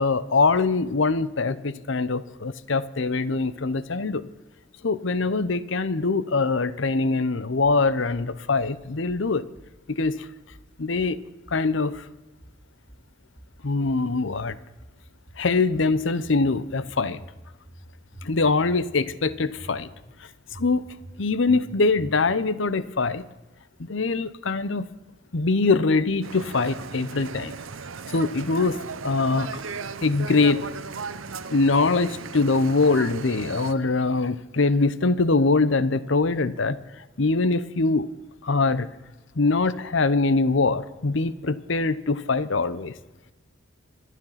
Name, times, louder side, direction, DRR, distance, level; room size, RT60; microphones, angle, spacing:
voice 1, 0.0-4.3 4.8-9.5 9.9-10.3 10.8-11.2 11.5-12.0 13.6-14.6 15.4-17.2 18.2-19.9 20.5-20.8 21.2-23.2 23.8-24.9 25.3-27.5 28.1-28.8 29.0-29.5 30.0-30.6 31.5-36.8 37.2-38.1 38.4-38.9 39.4-42.9, left 3 dB, 65° left, 16 dB, 0.8 m, -23 dB
sound 1, 7.6-8.3 8.6-9.2 9.6-10.2 10.5-11.2 11.5-12.1 12.4-13.1 13.4-14.1 14.3-15.0 15.3-16.0 16.2-16.9 17.2-17.8 18.1-18.8 19.1-19.7 20.0-20.1 20.5-21.2 21.5-21.6 21.9-22.4, right 1 dB, 10° left, 2.9 m, -47 dB
Street London Traffic People busy eq, 26.2-33.7, right 5 dB, 80° right, 0.8 m, -36 dB
26.0 x 9.4 x 5.8 m, 1.1 s
head